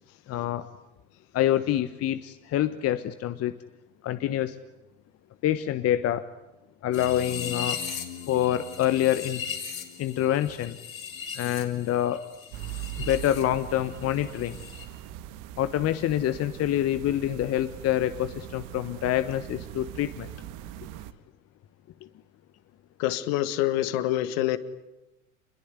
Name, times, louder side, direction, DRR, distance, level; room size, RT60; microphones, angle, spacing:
voice 1, 0.3-0.7 1.3-3.6 4.0-4.5 5.4-6.3 6.8-7.8 8.3-9.4 10.0-10.8 11.3-12.2 13.0-14.6 15.6-20.3, left 12 dB, 35° left, 12 dB, 1.2 m, -26 dB
sound 1, 6.9-13.4 13.7-14.9, left 7 dB, 80° left, 4.1 m, -37 dB
sound 2, 12.5-21.1, right 14 dB, 50° right, 1.6 m, -41 dB
voice 2, 23.0-24.6, left 14 dB, 55° left, 13 dB, 1.9 m, -26 dB
27.5 x 21.5 x 9.6 m, 0.97 s
hypercardioid pair, 80°, 40 cm